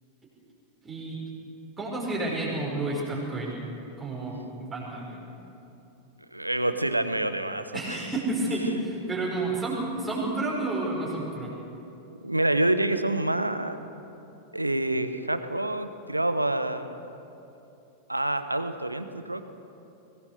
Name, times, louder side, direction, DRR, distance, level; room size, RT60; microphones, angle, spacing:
voice 1, 0.8-1.2 1.8-3.5 4.0-5.2 7.7-11.5, right 2 dB, 15° right, -5 dB, 5.2 m, -30 dB
voice 2, 6.3-8.0 12.1-13.8 14.5-17.0 18.1-19.4, right 1 dB, 85° right, 10 dB, 1.0 m, -27 dB
21.5 x 18.5 x 6.6 m, 2.9 s
figure-of-eight pair, 90°, 0 cm